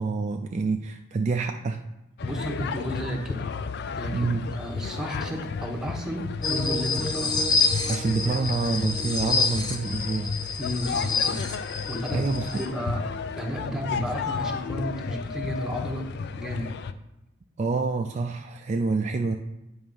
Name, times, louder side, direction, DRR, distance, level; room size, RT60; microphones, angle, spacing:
voice 1, 0.0-1.8 4.1-4.5 7.9-10.3 12.1-12.5 17.6-19.3, right 4 dB, 35° right, 5 dB, 0.3 m, -27 dB
sound 1, 2.2-16.9, left 5 dB, 60° left, 0.4 m, -33 dB
voice 2, 2.2-3.4 4.0-7.4 10.6-11.4 11.9-13.0 13.4-16.1 16.4-16.7, equal, 5° right, 0 dB, 1.0 m, -32 dB
sound 2, 6.4-12.7, left 4 dB, 20° left, 0.6 m, -28 dB
8.8 x 3.4 x 5.3 m, 0.91 s
head